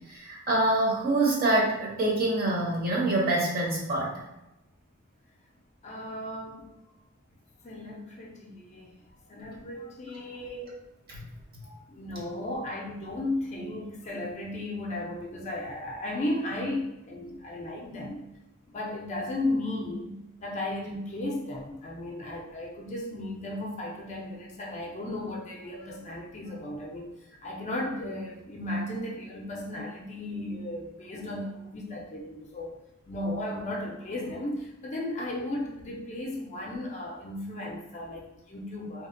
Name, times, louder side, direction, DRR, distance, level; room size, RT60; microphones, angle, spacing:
voice 1, 0.1-4.3 10.4-10.7 11.1-11.2, right 2 dB, 45° right, -3 dB, 0.8 m, -26 dB
voice 2, 5.8-6.7 7.6-8.9 9.3-10.7 11.6-18.3 18.7-32.8 33.1-39.1, left 1 dB, 35° left, -1 dB, 0.4 m, -35 dB
2.7 x 2.0 x 2.5 m, 0.90 s
head